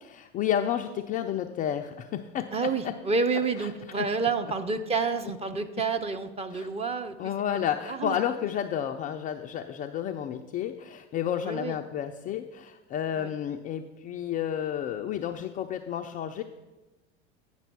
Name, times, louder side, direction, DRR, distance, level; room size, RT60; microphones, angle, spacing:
voice 1, 0.0-2.9 3.6-3.7 4.0-4.1 5.8-5.9 6.5-6.7 7.2-16.4, left 10 dB, 25° left, 5 dB, 0.3 m, -31 dB
voice 2, 2.5-7.1 7.9-8.2 11.4-11.8 13.2-13.3, right 4 dB, 15° right, 8 dB, 0.6 m, -29 dB
9.0 x 5.3 x 6.0 m, 1.1 s
figure-of-eight pair, 85°, 35 cm